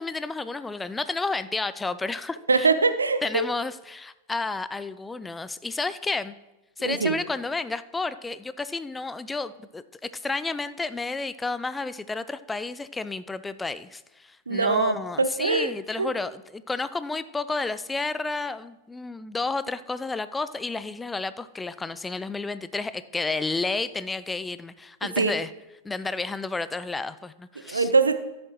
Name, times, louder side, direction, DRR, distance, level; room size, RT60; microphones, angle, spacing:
voice 1, 0.0-2.7 3.2-6.3 6.8-9.8 10.1-25.5 25.8-27.9, left 3 dB, 10° left, 15 dB, 0.3 m, -31 dB
voice 2, 2.5-3.5 6.8-7.2 14.5-15.7 16.0-16.1 25.2-25.3 27.6-28.1, right 4 dB, 75° right, 11 dB, 0.6 m, -22 dB
13.5 x 7.2 x 3.1 m, 1.0 s
figure-of-eight pair, 90°, 0 cm